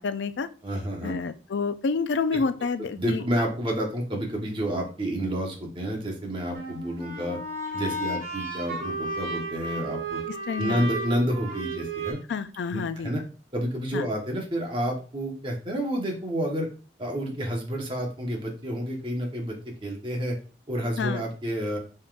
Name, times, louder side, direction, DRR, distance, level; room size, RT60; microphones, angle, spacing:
voice 1, 0.0-0.5 1.0-3.2 10.3-10.8 12.3-13.1 13.9-14.1 21.0-21.2, left 4 dB, 90° left, 12 dB, 0.4 m, -29 dB
voice 2, 0.6-1.1 2.8-7.4 7.7-10.2 10.6-12.2 12.7-13.2 13.5-16.7 17.0-20.4 20.7-21.8, equal, 30° right, 0 dB, 1.1 m, -29 dB
sound 1, 6.5-12.1, right 2 dB, 50° right, 2.1 m, -33 dB
5.4 x 3.6 x 2.5 m, 0.36 s
head